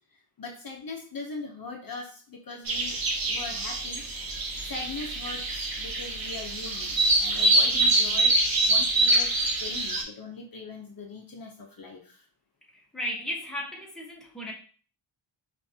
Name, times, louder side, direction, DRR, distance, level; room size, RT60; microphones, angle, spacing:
voice 1, 0.1-3.0 3.3-4.2 4.6-8.3 8.7-9.3 9.6-12.2, left 4 dB, 45° left, 1 dB, 0.8 m, -40 dB
sound 1, 2.7-10.0, right 2 dB, 45° right, 1.0 m, -25 dB
voice 2, 12.9-14.5, equal, ahead, -2 dB, 1.0 m, -34 dB
5.6 x 2.7 x 2.8 m, 0.40 s
wide cardioid pair, 125°, 49 cm